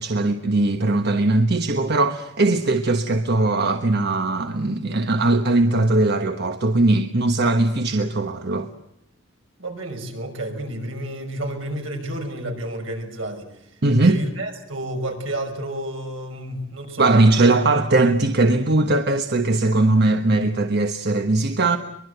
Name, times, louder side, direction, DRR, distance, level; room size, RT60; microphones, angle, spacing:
voice 1, 0.0-8.7 13.8-14.2 17.0-21.8, right 2 dB, 60° right, 1.3 m, -19 dB
voice 2, 9.6-13.5 14.0-17.5, right 1 dB, 80° right, 6.0 m, -30 dB
23.5 x 22.0 x 8.1 m
head